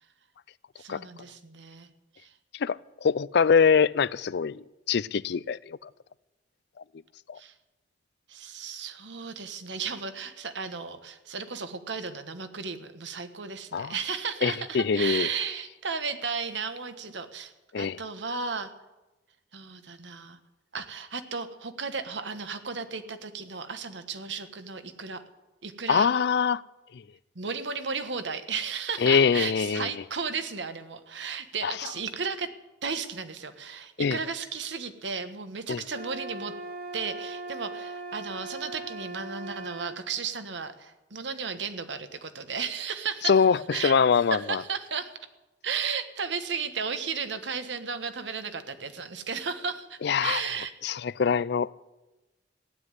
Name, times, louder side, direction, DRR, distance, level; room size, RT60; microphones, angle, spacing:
voice 1, 0.8-1.9 2.1-2.3 7.4-7.5 8.3-18.7 19.5-20.4 20.7-25.2 25.6-26.1 27.3-32.5 32.8-36.5 36.9-43.4 43.7-43.9 44.3-45.2 45.6-50.7, right 5 dB, 90° right, 1.4 m, -34 dB
voice 2, 2.6-4.6 4.9-5.9 7.3-7.4 13.7-13.9 14.4-15.3 17.7-18.0 25.9-26.6 29.0-29.9 31.6-31.7 34.0-34.2 35.7-35.8 43.3-43.6 43.8-44.6 50.0-50.4 50.8-51.7, left 6 dB, 65° left, 0.4 m, -23 dB
sound 1, 35.9-40.0, right 2 dB, 60° right, 1.4 m, -39 dB
15.5 x 9.6 x 9.6 m
head